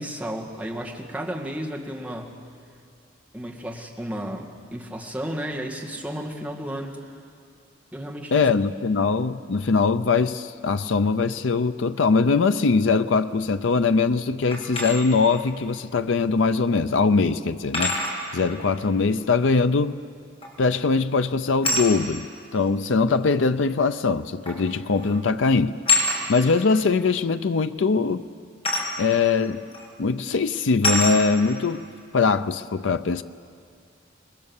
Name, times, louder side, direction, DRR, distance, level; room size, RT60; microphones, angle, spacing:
voice 1, 0.0-2.3 3.3-7.1 7.9-8.5, equal, 5° right, 2.1 m, -33 dB
voice 2, 8.3-18.0 18.3-20.0 20.6-22.3 22.5-25.8 26.3-28.3 29.0-29.6 30.0-31.8 32.1-33.2, left 4 dB, 80° left, 0.6 m, -22 dB
sound 1, 14.5-15.0 16.5-16.6 17.7-18.2 20.4-20.7 21.6-21.9 23.1-23.2 24.5-24.7 25.0-25.2 25.9-26.2 28.6-28.9 29.7-29.9 30.8-31.2, left 2 dB, 30° left, 5.8 m, -24 dB
27.0 x 21.5 x 7.2 m
head